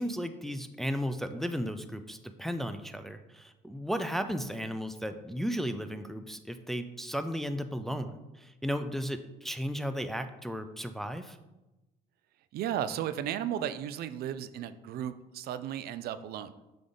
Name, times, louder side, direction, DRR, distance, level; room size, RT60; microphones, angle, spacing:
voice 1, 0.0-11.4, equal, ahead, 8 dB, 0.3 m, -35 dB
voice 2, 12.5-16.5, right 10 dB, 65° right, 12 dB, 0.4 m, -34 dB
7.3 x 3.4 x 3.9 m, 1.0 s
cardioid pair, 110°, 17 cm